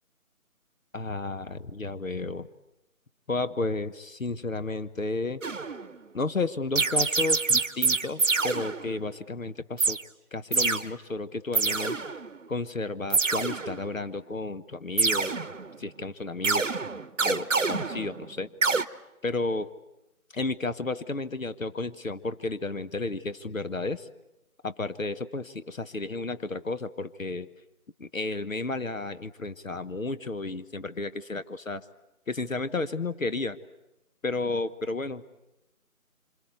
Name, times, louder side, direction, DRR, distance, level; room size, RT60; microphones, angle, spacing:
voice 1, 0.9-2.5 3.3-5.4 6.1-10.0 10.3-12.0 12.5-15.4 15.8-16.7 17.2-18.5 19.2-19.7 20.3-24.1 24.6-27.5 28.0-31.9 32.3-33.6 34.2-35.2, left 3 dB, 65° left, 13 dB, 1.2 m, -32 dB
sound 1, 5.4-6.0 6.8-9.1 9.8-10.0 10.5-10.9 11.5-12.4 13.1-14.0 15.0-15.8 16.4-18.3 18.6-18.9, right 4 dB, 60° right, 1.0 m, -26 dB
26.5 x 26.0 x 8.1 m, 0.93 s
figure-of-eight pair, 165°, 43 cm